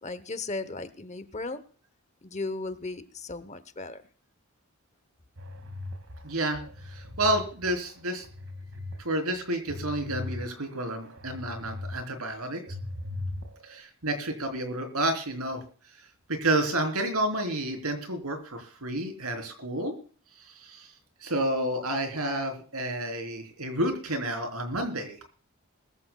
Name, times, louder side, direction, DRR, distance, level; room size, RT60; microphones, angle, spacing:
voice 1, 0.0-1.6 2.2-4.0, left 3 dB, 30° left, 14 dB, 0.8 m, -36 dB
sound 1, 5.4-7.4 7.9-9.0 9.3-12.0 12.3-13.8, left 2 dB, 70° right, 2.0 m, -39 dB
voice 2, 6.2-8.2 9.0-12.6 13.6-15.6 16.3-19.9 20.6-20.9 21.2-25.2, right 1 dB, 90° right, 5 dB, 3.6 m, -30 dB
21.0 x 14.5 x 2.3 m, 0.41 s
head